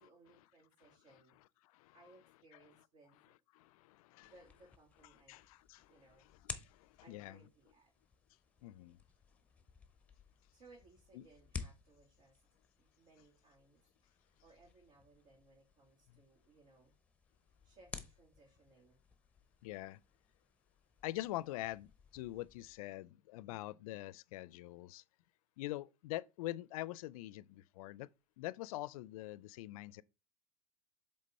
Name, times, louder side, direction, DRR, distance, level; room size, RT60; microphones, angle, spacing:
voice 1, 0.0-1.4 1.9-3.3 4.2-5.5 5.9-6.3 7.0-7.9 10.5-12.5 12.8-16.9 17.6-19.0, right 3 dB, 60° right, 2.8 m, -65 dB
voice 2, 1.6-2.0 3.5-4.3 5.1-7.4 8.6-9.0 11.1-11.3 19.6-20.0 21.0-25.0 25.6-28.1 28.4-30.0, left 17 dB, 70° left, 0.4 m, -45 dB
sound 1, 4.2-22.8, left 4 dB, 5° left, 0.8 m, -54 dB
7.6 x 3.6 x 4.2 m
supercardioid pair, 120°, 19 cm